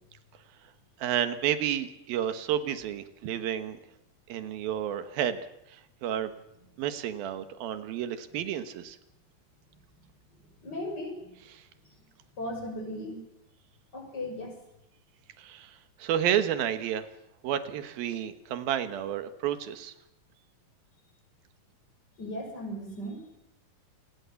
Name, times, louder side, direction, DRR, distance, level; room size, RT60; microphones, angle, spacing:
voice 1, 1.0-3.8 4.3-5.4 5.7-6.3 6.8-9.0 11.6-11.7 15.4-17.1 17.4-19.9, right 10 dB, 80° right, 11 dB, 3.1 m, -31 dB
voice 2, 10.6-11.4 12.4-13.2 13.9-14.6 22.2-23.3, left 1 dB, 25° left, 3 dB, 6.7 m, -37 dB
28.0 x 20.0 x 7.1 m, 0.85 s
omnidirectional pair, 4.1 m